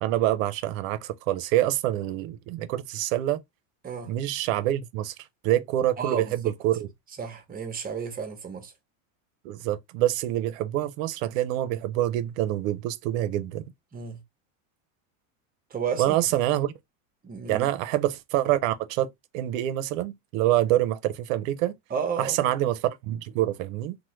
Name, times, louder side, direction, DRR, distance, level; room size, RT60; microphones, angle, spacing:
voice 1, 0.0-3.4 4.1-5.1 5.4-6.9 9.4-13.6 16.0-16.7 17.5-21.7 22.2-24.0, right 13 dB, 70° right, 0.5 m, -26 dB
voice 2, 6.0-6.5 7.2-8.7 13.9-14.2 15.7-16.2 17.2-17.7 21.9-22.5, right 6 dB, 20° right, 0.7 m, -32 dB
2.9 x 2.1 x 3.0 m
supercardioid pair, 125°, 41 cm